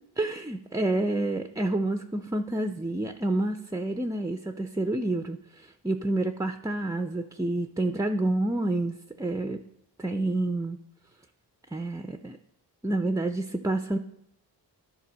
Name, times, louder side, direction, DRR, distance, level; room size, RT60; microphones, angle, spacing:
voice 1, 0.2-9.6 10.0-10.8 11.7-12.4 12.8-14.0, right 2 dB, 10° right, 7 dB, 0.4 m, -29 dB
11.5 x 3.9 x 6.1 m, 0.80 s
cardioid pair, 75°, 45 cm